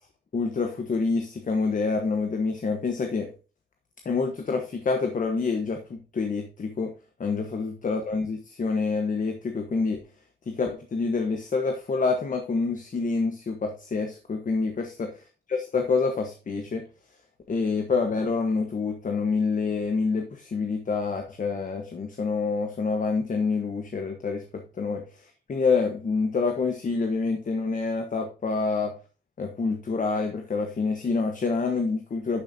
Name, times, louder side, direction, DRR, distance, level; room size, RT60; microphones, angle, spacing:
voice 1, 0.3-3.3 4.0-6.9 7.2-10.0 10.5-15.1 15.5-16.9 17.5-28.9 29.4-32.4, left 4 dB, 45° left, 4 dB, 1.2 m, -27 dB
11.0 x 6.4 x 2.7 m, 0.34 s
wide cardioid pair, 165°, 19 cm